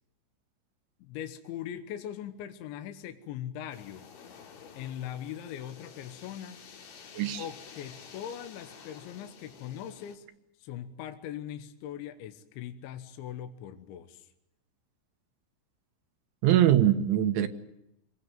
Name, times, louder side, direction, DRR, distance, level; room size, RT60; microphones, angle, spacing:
voice 1, 1.0-4.1 4.7-6.6 7.4-10.3 10.6-14.3, left 10 dB, 75° left, 3.4 m, -40 dB
sound 1, 3.7-10.2, left 6 dB, 55° left, 4.2 m, -51 dB
voice 2, 16.4-17.5, right 11 dB, 75° right, 3.6 m, -22 dB
26.5 x 19.5 x 9.0 m
omnidirectional pair, 5.6 m